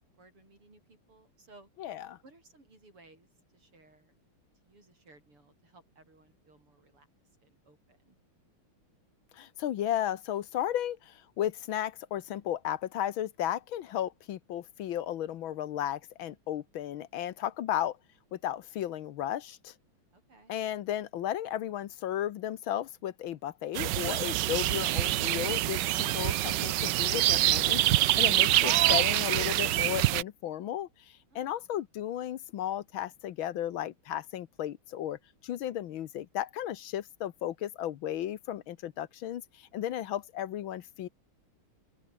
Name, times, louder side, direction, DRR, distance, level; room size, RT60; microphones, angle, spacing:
voice 1, 0.0-1.7 2.2-4.1 4.6-7.1 7.4-8.2 20.1-20.5 31.3-31.6, right 2 dB, 85° right, 8.9 m, -59 dB
voice 2, 1.8-2.2 9.4-18.0 18.3-19.7 20.5-30.9 31.3-41.1, left 11 dB, 70° left, 1.6 m, -34 dB
sound 1, 23.7-30.2, right 15 dB, 70° right, 1.1 m, -26 dB
open air
omnidirectional pair, 2.4 m